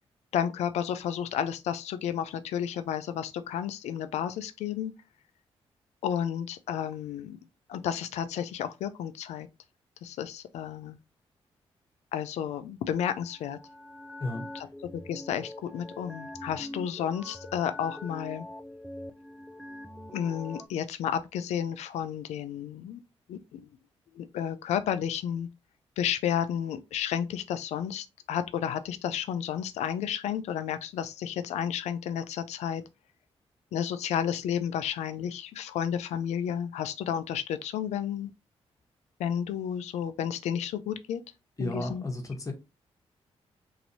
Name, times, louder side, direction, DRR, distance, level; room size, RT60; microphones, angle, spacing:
voice 1, 0.3-4.9 6.0-7.4 7.7-9.5 10.0-11.0 12.1-13.6 14.5-14.7 14.9-18.4 20.1-23.0 23.3-23.7 24.1-25.5 26.0-32.8 33.7-38.3 39.2-41.2 41.6-42.0, left 9 dB, 85° left, 0.4 m, -32 dB
sound 1, 13.3-20.7, left 1 dB, ahead, 0.4 m, -44 dB
voice 2, 41.6-42.5, left 2 dB, 30° left, 1.1 m, -33 dB
2.9 x 2.6 x 2.7 m
cardioid pair, 60°, 11 cm